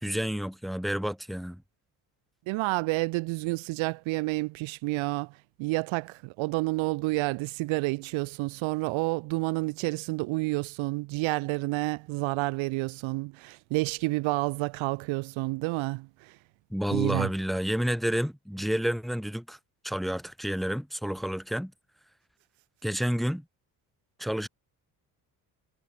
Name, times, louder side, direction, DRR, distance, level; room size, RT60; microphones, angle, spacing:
voice 1, 0.0-1.6 16.7-19.6 19.8-21.7 22.8-23.4 24.2-24.5, equal, ahead, 1.7 m, -30 dB
voice 2, 2.5-16.4 16.9-17.3, right 23 dB, 80° right, 1.7 m, -29 dB
supercardioid pair, 60°, 46 cm